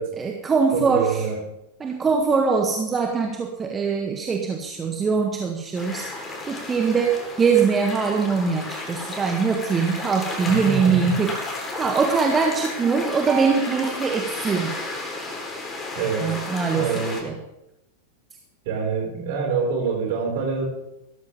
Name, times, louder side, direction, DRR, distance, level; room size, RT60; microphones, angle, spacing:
voice 1, 0.2-1.2 1.8-14.8 16.2-17.3, right 5 dB, 20° right, 3 dB, 1.5 m, -22 dB
voice 2, 0.7-1.4 10.5-11.1 16.0-17.2 18.7-20.6, right 5 dB, 50° right, 0 dB, 5.3 m, -26 dB
sound 1, 5.7-17.2, left 2 dB, 20° left, 4.0 m, -33 dB
16.5 x 13.5 x 3.6 m, 0.90 s
figure-of-eight pair, 90°, 0 cm